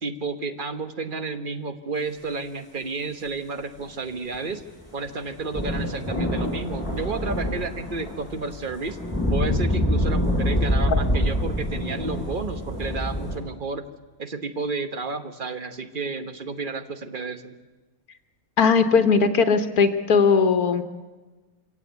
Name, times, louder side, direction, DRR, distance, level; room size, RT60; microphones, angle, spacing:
voice 1, 0.0-4.6 4.9-9.0 9.3-13.8 14.2-17.6, right 4 dB, 35° right, 9 dB, 1.2 m, -31 dB
sound 1, 4.3-13.4, left 1 dB, ahead, 7.5 m, -26 dB
voice 2, 18.6-20.8, left 5 dB, 80° left, 8 dB, 1.7 m, -19 dB
25.5 x 17.0 x 8.2 m, 1.2 s
omnidirectional pair, 1.6 m